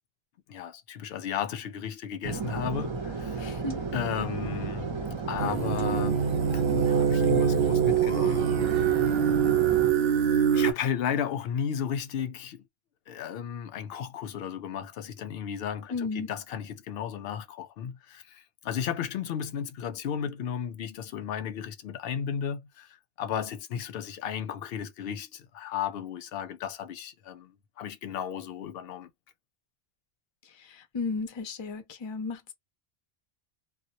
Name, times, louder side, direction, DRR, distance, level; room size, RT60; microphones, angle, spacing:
voice 1, 0.5-3.5 3.9-4.9 5.3-6.2 6.5-8.5 8.7-9.0 10.5-12.6 13.1-27.5 27.8-29.1, left 8 dB, 70° left, 0.8 m, -34 dB
sound 1, 2.2-9.9, right 4 dB, 35° right, 0.5 m, -33 dB
voice 2, 3.4-3.8 15.9-16.3 30.6-32.5, left 4 dB, 35° left, 0.5 m, -34 dB
sound 2, 5.4-10.7, right 8 dB, 65° right, 0.8 m, -24 dB
2.2 x 2.1 x 2.7 m
omnidirectional pair, 1.1 m